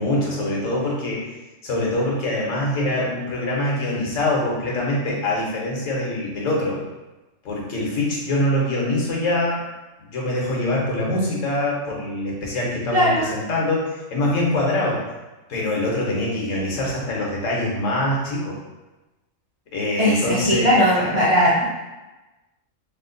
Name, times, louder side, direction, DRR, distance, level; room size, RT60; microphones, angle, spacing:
voice 1, 0.0-1.3 1.6-6.8 7.4-9.6 10.0-15.0 15.5-18.6 19.7-20.7 21.0-21.1, left 1 dB, 75° left, -3 dB, 1.2 m, -24 dB
voice 2, 12.9-13.3 20.0-21.7, equal, 40° right, -8 dB, 0.5 m, -18 dB
3.1 x 2.1 x 3.7 m, 1.1 s
omnidirectional pair, 1.4 m